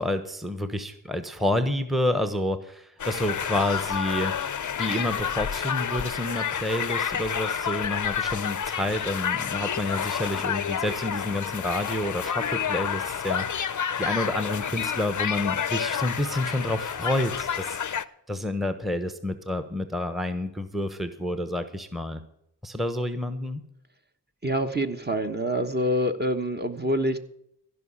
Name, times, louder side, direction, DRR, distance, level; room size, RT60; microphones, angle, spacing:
voice 1, 0.0-4.3 4.8-17.8 18.3-22.2 22.6-23.6, left 1 dB, ahead, 9 dB, 1.0 m, -29 dB
sound 1, 3.0-18.0, left 8 dB, 45° left, 0.6 m, -29 dB
voice 2, 24.4-27.2, equal, 25° right, 6 dB, 1.2 m, -26 dB
15.5 x 5.7 x 8.8 m, 0.74 s
cardioid pair, 60°, 41 cm